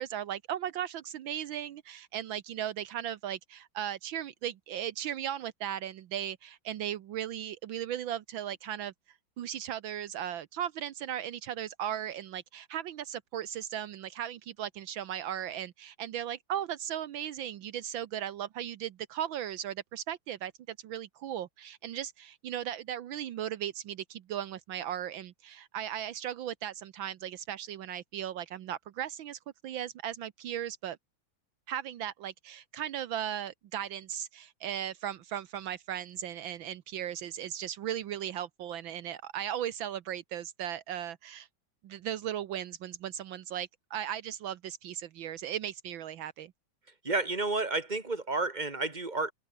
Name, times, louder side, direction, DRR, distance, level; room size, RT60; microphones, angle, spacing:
voice 1, 0.0-8.9 9.4-31.0 31.7-41.5 41.8-46.5, right 10 dB, 80° right, 1.7 m, -37 dB
voice 2, 47.0-49.3, right 3 dB, 20° right, 3.1 m, -31 dB
omnidirectional pair, 2.2 m